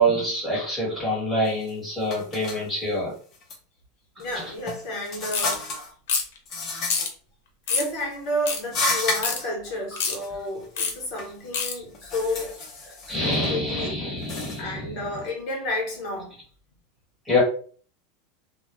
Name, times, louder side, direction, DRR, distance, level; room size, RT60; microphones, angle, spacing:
voice 1, 0.0-3.1 4.2-4.5 11.7-11.8 12.4-12.5 12.8-15.2 17.3-17.4, equal, 5° right, 1.1 m, -26 dB
sound 1, 1.5-1.7 2.1-2.6 3.3-3.6 4.2-5.9 6.5-7.1 7.7-8.1 8.6-9.5 10.2-10.3 10.6-11.3 11.7-13.5 14.2-14.6, left 2 dB, 30° left, 0.6 m, -31 dB
voice 2, 4.2-5.9 7.7-12.6 13.2-14.0 14.6-16.4, left 1 dB, 45° left, 0.9 m, -31 dB
sound 2, 5.3-5.6 6.1-6.4 6.9-7.1 7.7-7.9 8.5-8.6 9.2-9.4 10.0-10.2 10.8-10.9 11.5-11.7, left 5 dB, 75° left, 0.7 m, -26 dB
2.2 x 2.1 x 3.0 m
supercardioid pair, 160°, 0 cm